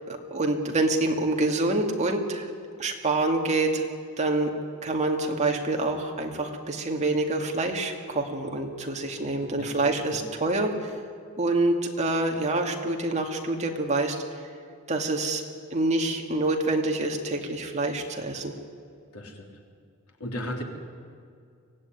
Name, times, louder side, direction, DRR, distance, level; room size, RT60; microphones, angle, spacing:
voice 1, 0.1-2.5 2.8-3.9 4.2-4.5 4.8-10.9 11.4-14.2 14.9-15.4 15.7-18.5, right 2 dB, 30° right, 2 dB, 2.3 m, -26 dB
voice 2, 9.4-9.7 10.1-10.2 19.1-19.5 20.2-20.6, equal, 90° left, 1 dB, 3.7 m, -35 dB
24.0 x 17.0 x 9.7 m, 2.3 s
head